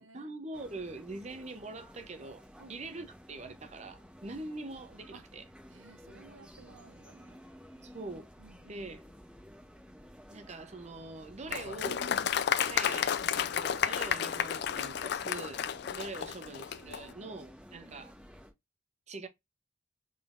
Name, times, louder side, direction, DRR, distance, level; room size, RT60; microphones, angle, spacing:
voice 1, 0.0-5.4 7.8-8.3 8.7-9.0 10.3-12.1 12.6-15.6 15.9-18.1 19.1-19.3, right 2 dB, 35° right, 0.7 m, -43 dB
sound 1, 0.5-18.5, equal, 5° right, 1.2 m, -53 dB
voice 2, 5.7-7.4 8.4-8.9 16.2-17.4 17.7-18.0, right 3 dB, 80° right, 0.6 m, -57 dB
Applause, 11.5-17.0, left 9 dB, 55° left, 0.3 m, -32 dB
3.8 x 3.8 x 2.4 m
head